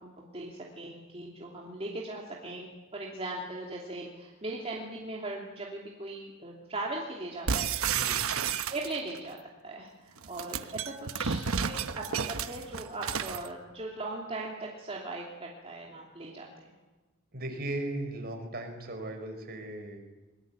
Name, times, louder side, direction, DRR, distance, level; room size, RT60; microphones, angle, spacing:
voice 1, 0.0-8.3 8.7-9.4 9.6-16.5, right 2 dB, 30° right, -2 dB, 2.8 m, -39 dB
sound 1, 7.5-9.2 10.2-13.5, right 6 dB, 75° right, 1.1 m, -31 dB
voice 2, 17.3-20.0, right 1 dB, 45° right, 5 dB, 4.8 m, -37 dB
23.0 x 21.5 x 9.0 m, 1.2 s
head